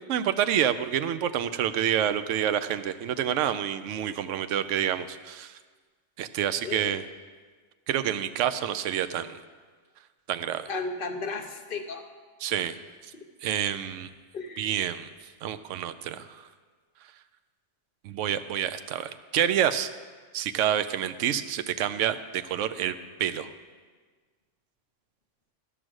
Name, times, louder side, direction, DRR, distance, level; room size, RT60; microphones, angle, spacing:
voice 1, 0.1-5.6 6.2-7.0 7.9-9.4 10.3-10.7 12.4-12.8 13.0-13.1 13.4-14.1 14.6-15.1 15.4-16.4 18.0-19.9 20.3-23.5, right 10 dB, 80° right, 11 dB, 0.9 m, -28 dB
voice 2, 6.6-7.0 10.7-12.1 14.3-14.7, left 3 dB, 50° left, 6 dB, 0.9 m, -34 dB
12.0 x 6.2 x 6.3 m, 1.5 s
omnidirectional pair, 1.2 m